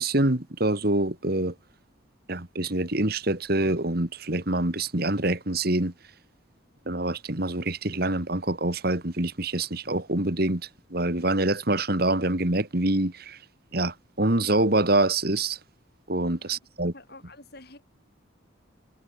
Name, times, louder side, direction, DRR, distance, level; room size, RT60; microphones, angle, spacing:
voice 1, 0.0-1.5 2.3-5.9 6.9-13.4 13.7-15.6 16.1-16.9, right 2 dB, 50° right, 2.2 m, -25 dB
voice 2, 16.9-17.8, left 2 dB, 50° left, 6.5 m, -48 dB
head